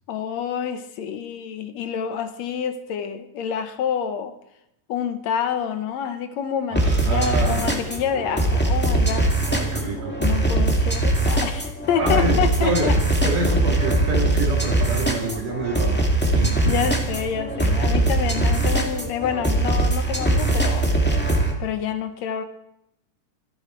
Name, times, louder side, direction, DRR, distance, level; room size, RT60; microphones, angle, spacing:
voice 1, 0.1-4.3 4.9-13.0 16.7-20.9 21.6-22.4, left 8 dB, 65° left, 9 dB, 2.0 m, -28 dB
sound 1, 6.7-21.5, right 2 dB, 5° left, 1.5 m, -21 dB
voice 2, 6.7-7.7 9.5-10.2 12.0-13.0 13.2-16.7, right 2 dB, 80° right, -3 dB, 4.1 m, -26 dB
25.5 x 11.0 x 4.5 m, 0.79 s
omnidirectional pair, 3.7 m